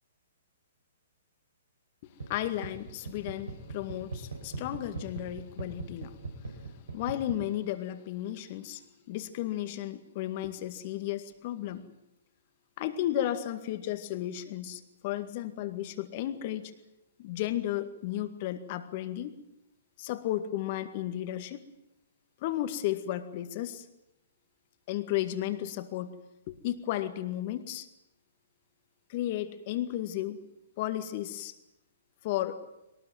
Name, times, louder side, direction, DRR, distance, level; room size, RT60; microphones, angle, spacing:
voice 1, 2.0-11.9 12.8-16.7 17.2-19.3 20.0-21.6 22.4-23.9 24.9-26.1 26.5-27.9 29.1-30.4 30.8-31.5 32.2-32.6, left 13 dB, 45° left, 10 dB, 2.0 m, -34 dB
sound 1, 2.2-7.4, right 3 dB, 75° right, 4.7 m, -41 dB
22.0 x 19.0 x 9.3 m, 0.92 s
figure-of-eight pair, 120°, 0 cm